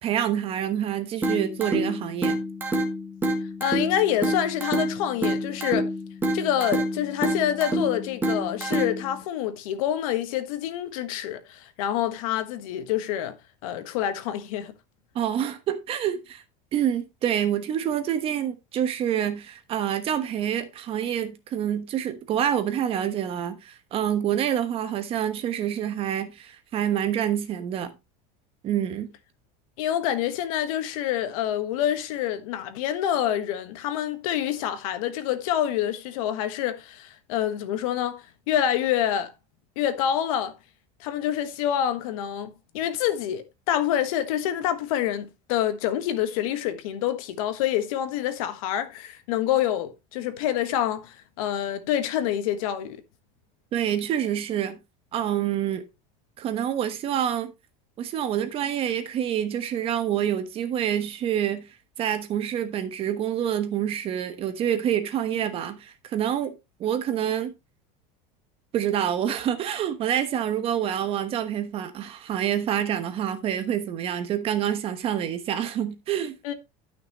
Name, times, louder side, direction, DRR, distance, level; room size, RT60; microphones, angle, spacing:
voice 1, 0.0-2.4 15.1-16.4 16.7-27.9 28.6-29.1 53.7-54.8 55.1-55.8 56.4-57.5 58.0-61.6 62.0-66.5 66.8-67.5 68.7-76.3, right 10 dB, 30° right, 1.2 m, -27 dB
sound 1, 1.2-9.2, right 1 dB, 10° right, 1.9 m, -28 dB
voice 2, 3.6-5.9 6.3-13.4 13.6-14.7 29.8-39.3 39.8-40.5 41.0-53.0 76.4-76.5, left 11 dB, 80° left, 1.4 m, -27 dB
12.5 x 6.0 x 3.0 m
cardioid pair, 165°, 18 cm